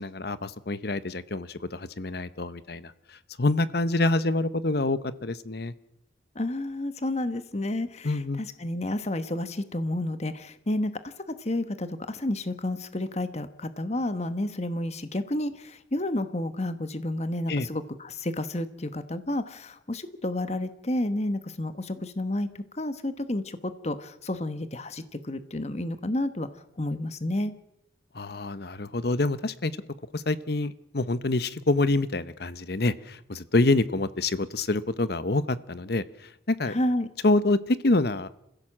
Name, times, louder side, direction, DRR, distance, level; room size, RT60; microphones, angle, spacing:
voice 1, 0.0-2.9 3.4-5.7 8.0-8.4 17.5-17.7 28.1-29.7 30.1-36.8 37.2-38.3, left 2 dB, 55° left, 15 dB, 0.9 m, -26 dB
voice 2, 6.3-11.1 11.4-26.5 26.8-27.5 36.7-37.1, left 1 dB, 35° left, 11 dB, 1.2 m, -30 dB
27.5 x 16.0 x 7.4 m, 0.84 s
head